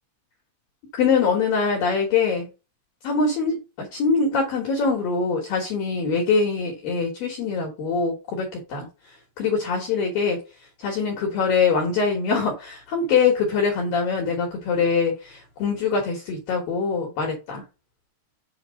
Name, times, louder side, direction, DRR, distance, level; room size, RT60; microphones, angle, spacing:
voice 1, 1.0-2.5 3.0-8.9 9.4-10.4 10.8-17.6, left 5 dB, 70° left, 2.2 m, -23 dB
7.1 x 2.7 x 5.0 m
omnidirectional pair, 5.5 m